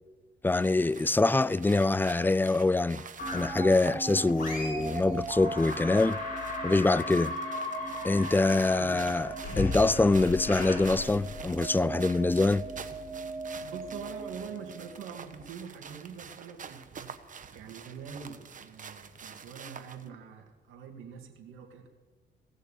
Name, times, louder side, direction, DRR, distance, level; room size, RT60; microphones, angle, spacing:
voice 1, 0.4-3.0 3.3-6.2 6.6-7.3 8.0-9.3 9.6-12.7, left 2 dB, 10° left, 0.3 m, -25 dB
sound 1, 0.6-20.1, right 6 dB, 40° right, 1.1 m, -47 dB
sound 2, 3.2-3.8 4.3-5.0 5.3-11.7, left 3 dB, 45° left, 5.4 m, -37 dB
sound 3, 3.2-15.3, right 3 dB, 15° right, 2.4 m, -40 dB
voice 2, 13.5-17.1 17.5-21.9, right 7 dB, 90° right, 2.3 m, -44 dB
18.0 x 6.6 x 8.3 m
cardioid pair, 90°, 20 cm